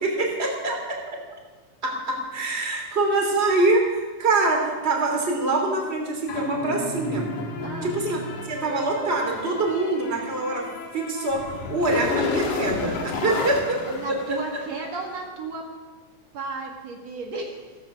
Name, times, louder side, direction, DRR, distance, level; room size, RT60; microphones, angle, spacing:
voice 1, 0.0-0.7 1.8-7.3 7.8-8.2 8.5-10.6 10.9-11.4 11.7-13.8, right 2 dB, 20° right, 1 dB, 2.9 m, -24 dB
sound 1, 6.3-15.0, left 4 dB, 85° left, 3.2 m, -32 dB
voice 2, 13.9-15.7 16.3-17.6, right 3 dB, 65° right, 0 dB, 3.1 m, -33 dB
16.0 x 15.0 x 6.0 m, 1.3 s
omnidirectional pair, 3.3 m